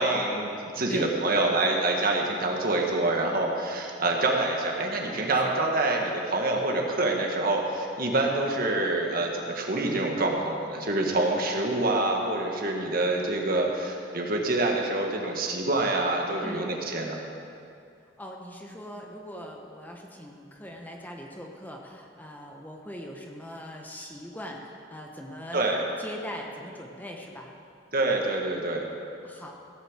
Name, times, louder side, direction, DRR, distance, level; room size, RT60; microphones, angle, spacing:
voice 1, 0.0-17.1 25.5-25.8 27.9-28.8, right 2 dB, 55° right, 1 dB, 1.7 m, -26 dB
voice 2, 18.2-25.7 26.0-27.5 29.2-29.5, equal, 10° left, 1 dB, 1.0 m, -41 dB
16.5 x 6.7 x 7.4 m, 2.4 s
head